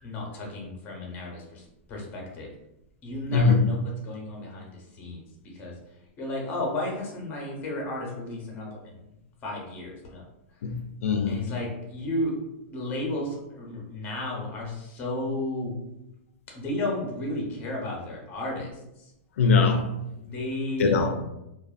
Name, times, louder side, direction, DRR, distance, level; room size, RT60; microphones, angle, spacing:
voice 1, 0.0-2.5 3.0-3.8 4.0-5.8 6.2-9.0 9.4-10.2 11.3-12.4 12.6-15.7 16.5-19.1 20.1-21.1, left 1 dB, 25° left, -1 dB, 0.7 m, -33 dB
voice 2, 3.3-3.6 10.6-11.4 19.4-19.9 20.8-21.1, left 4 dB, 80° left, 4 dB, 0.4 m, -21 dB
2.4 x 2.2 x 2.4 m, 0.88 s
hypercardioid pair, 150°, 7 cm